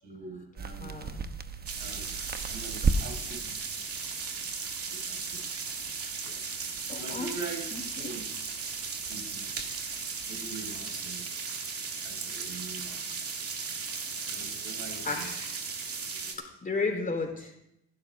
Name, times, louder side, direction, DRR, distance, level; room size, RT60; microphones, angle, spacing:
voice 1, 0.0-0.9 1.8-2.1 2.5-3.9 4.9-5.4 6.2-6.4 6.9-7.6 8.0-8.3 9.1-9.5 10.3-11.3 12.0-13.2 14.2-15.3 16.0-16.4 16.8-16.9, right 4 dB, 70° right, -1 dB, 6.9 m, -43 dB
sound 1, 0.6-10.7, right 4 dB, 30° right, 0.9 m, -38 dB
voice 2, 0.8-1.3 6.9-7.3 7.7-7.8 15.0-15.6 16.6-17.5, left 4 dB, 30° left, 1 dB, 4.0 m, -33 dB
sound 2, 1.7-16.3, right 5 dB, 50° right, 2.3 m, -36 dB
26.5 x 12.0 x 2.6 m, 0.79 s
cardioid pair, 90°, 30 cm